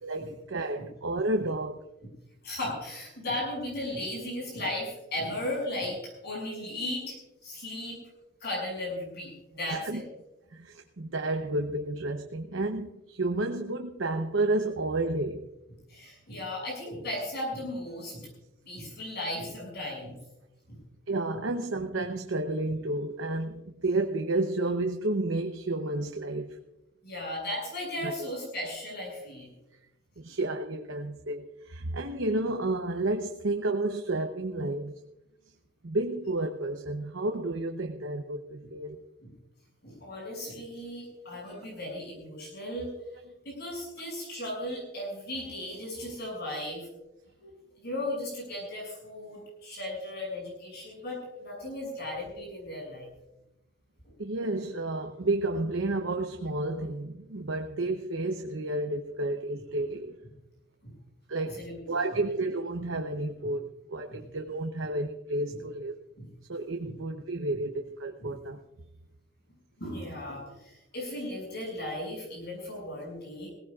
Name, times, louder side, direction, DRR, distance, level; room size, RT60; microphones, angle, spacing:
voice 1, 0.0-1.8 9.7-10.0 10.5-15.5 21.1-26.6 28.0-28.3 30.2-34.9 35.8-39.0 41.2-41.4 54.2-60.2 61.3-65.9 66.5-68.6, right 2 dB, 85° right, 4 dB, 0.9 m, -31 dB
voice 2, 2.4-7.2 7.4-8.0 8.4-10.0 15.9-18.3 18.7-20.1 20.7-20.8 27.0-29.5 39.2-39.3 39.8-42.9 43.4-46.9 47.4-47.5 47.8-53.1 54.0-54.1 60.8-60.9 61.6-62.0 64.1-64.2 66.2-66.3 66.8-66.9 68.2-68.3 69.8-73.5, left 1 dB, 60° left, -2 dB, 6.5 m, -36 dB
21.0 x 17.5 x 2.4 m, 0.95 s
head